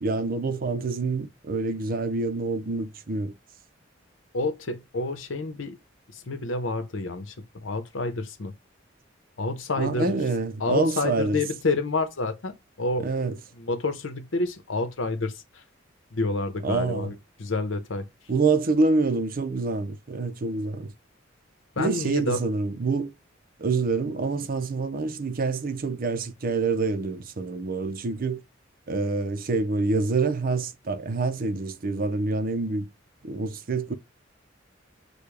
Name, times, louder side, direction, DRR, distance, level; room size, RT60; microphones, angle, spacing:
voice 1, 0.0-3.3 9.8-11.4 13.0-13.3 16.6-17.1 18.3-20.9 21.8-23.1 23.6-28.4 28.9-32.9 33.2-33.9, right 3 dB, 45° right, 0.6 m, -26 dB
voice 2, 4.3-5.8 6.1-8.5 9.4-10.2 10.6-13.1 13.5-15.6 16.1-18.1 21.8-22.4, left 2 dB, 80° left, 0.9 m, -29 dB
6.7 x 2.3 x 3.3 m
head